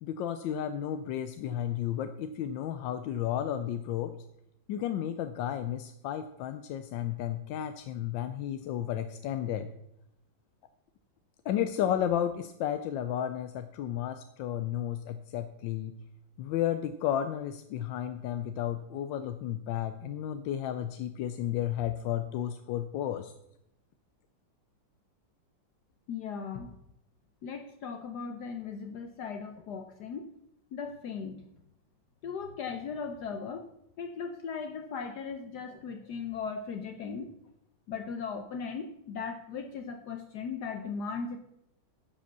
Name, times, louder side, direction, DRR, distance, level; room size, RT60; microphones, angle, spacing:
voice 1, 0.0-4.1 4.7-9.7 11.4-15.9 16.4-23.3, left 10 dB, 90° left, 9 dB, 1.3 m, -33 dB
voice 2, 26.1-26.7 27.4-30.3 30.7-31.4 32.2-33.6 34.0-37.3 37.9-41.4, left 5 dB, 70° left, 5 dB, 1.3 m, -38 dB
10.5 x 5.1 x 6.7 m, 0.79 s
omnidirectional pair, 2.0 m